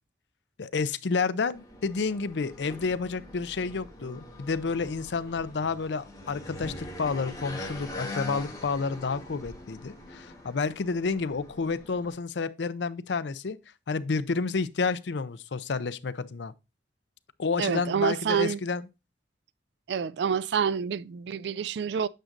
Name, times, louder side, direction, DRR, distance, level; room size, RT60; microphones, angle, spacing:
voice 1, 0.6-13.6 13.9-16.5 17.4-18.8, left 4 dB, 80° left, 0.5 m, -30 dB
sound 1, 1.5-12.1, left 1 dB, 20° left, 2.3 m, -43 dB
voice 2, 17.6-18.6 19.9-22.1, right 7 dB, 70° right, 0.3 m, -27 dB
8.9 x 6.5 x 2.5 m
head